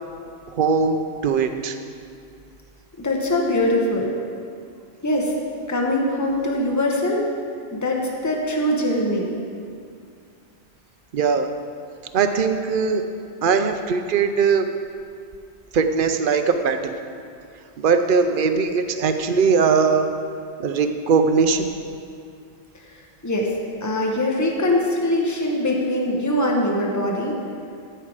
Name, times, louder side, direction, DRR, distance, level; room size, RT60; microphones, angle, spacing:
voice 1, 0.5-1.8 11.1-11.5 12.1-13.0 13.4-14.7 15.7-16.9 17.8-20.1 20.6-21.7, right 5 dB, 60° right, 7 dB, 0.8 m, -20 dB
voice 2, 3.0-4.1 5.0-5.3 5.7-7.2 7.7-9.3 22.7-23.5 23.8-27.4, left 1 dB, 15° left, -1 dB, 1.1 m, -22 dB
15.0 x 5.7 x 4.9 m, 2.4 s
omnidirectional pair, 1.1 m